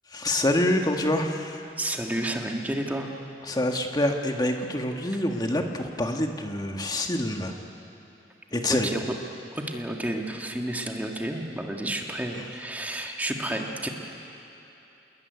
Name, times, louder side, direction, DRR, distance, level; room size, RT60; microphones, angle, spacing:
voice 1, 0.1-1.6 3.5-7.5 8.5-8.9 12.3-12.4, left 1 dB, 25° left, 3 dB, 1.7 m, -26 dB
voice 2, 1.8-3.1 8.7-9.0 9.5-13.9, right 1 dB, 10° right, 1 dB, 2.0 m, -31 dB
27.0 x 21.5 x 9.5 m, 3.0 s
head